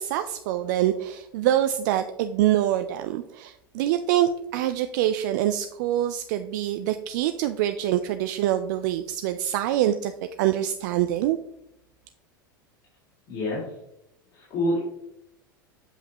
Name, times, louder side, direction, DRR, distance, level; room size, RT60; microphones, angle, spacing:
voice 1, 0.0-10.1 10.4-11.4, right 12 dB, 55° right, 8 dB, 0.4 m, -25 dB
voice 2, 13.3-13.6 14.3-14.8, left 1 dB, 45° left, -8 dB, 2.7 m, -26 dB
7.3 x 5.6 x 3.0 m, 0.80 s
figure-of-eight pair, 85°, 11 cm